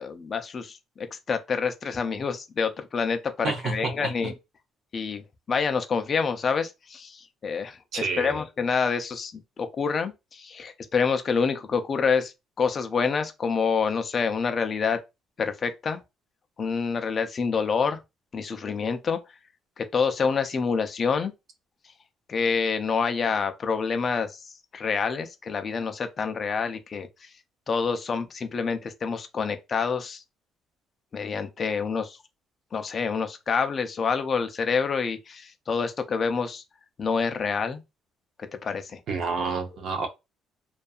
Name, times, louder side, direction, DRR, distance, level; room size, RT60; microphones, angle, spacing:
voice 1, 0.0-4.3 4.9-15.0 15.4-16.0 16.6-18.0 18.3-19.2 19.8-21.3 22.3-24.4 24.7-27.3 27.7-30.2 31.1-32.2 32.7-36.6 37.0-37.8 38.4-39.0 39.4-39.6, left 5 dB, 35° left, 0.4 m, -27 dB
voice 2, 3.4-4.3 7.9-8.4 39.1-40.1, right 4 dB, 55° right, 0.5 m, -29 dB
2.6 x 2.3 x 2.3 m
cardioid pair, 135°, 0 cm